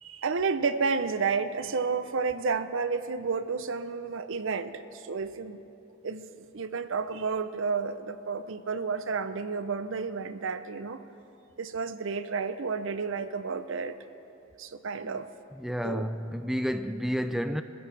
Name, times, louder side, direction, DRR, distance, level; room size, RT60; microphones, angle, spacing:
voice 1, 0.0-5.6 6.0-6.2 6.5-11.0 11.6-13.9 14.6-15.3 15.8-16.0, right 5 dB, 65° right, 0.7 m, -31 dB
voice 2, 15.5-17.6, equal, ahead, 0.3 m, -31 dB
27.0 x 15.0 x 3.4 m
head